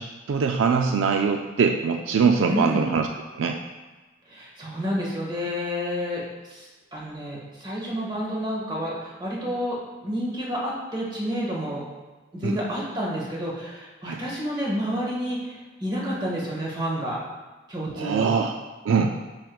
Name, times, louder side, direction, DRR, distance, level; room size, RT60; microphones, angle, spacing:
voice 1, 0.0-3.1 3.4-3.6 12.4-12.6 14.0-14.2 18.0-18.6 18.8-19.2, right 5 dB, 75° right, 3 dB, 0.4 m, -23 dB
voice 2, 2.4-2.8 4.3-11.8 12.3-17.2 17.7-18.4, equal, 25° right, -4 dB, 1.7 m, -29 dB
10.0 x 4.7 x 2.3 m, 1.3 s
head